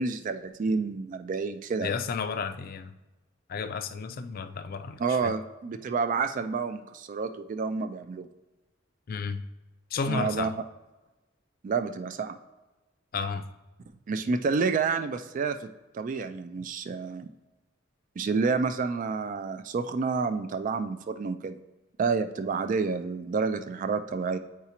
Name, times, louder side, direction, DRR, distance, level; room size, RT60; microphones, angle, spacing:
voice 1, 0.0-1.9 5.0-8.3 10.1-10.5 11.6-12.4 14.1-15.7 15.9-17.3 18.2-21.6 22.0-24.4, right 4 dB, 45° right, 9 dB, 0.3 m, -29 dB
voice 2, 1.8-2.9 3.5-5.3 9.1-9.4 9.9-10.6 13.1-13.5, left 5 dB, 50° left, 9 dB, 0.4 m, -32 dB
8.1 x 4.8 x 2.9 m, 1.1 s
head